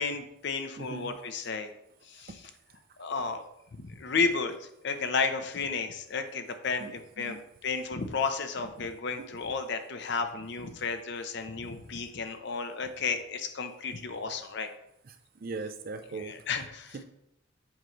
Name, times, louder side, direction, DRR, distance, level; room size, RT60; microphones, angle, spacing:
voice 1, 0.0-1.7 2.1-2.4 3.0-3.4 3.8-7.4 7.6-14.7 16.1-17.0, left 4 dB, 55° left, 7 dB, 0.6 m, -32 dB
voice 2, 0.8-1.1 6.8-7.4 9.2-9.3 15.1-15.2 15.4-16.4 16.9-17.0, right 3 dB, 45° right, 8 dB, 0.5 m, -39 dB
7.3 x 4.6 x 3.0 m, 0.80 s
head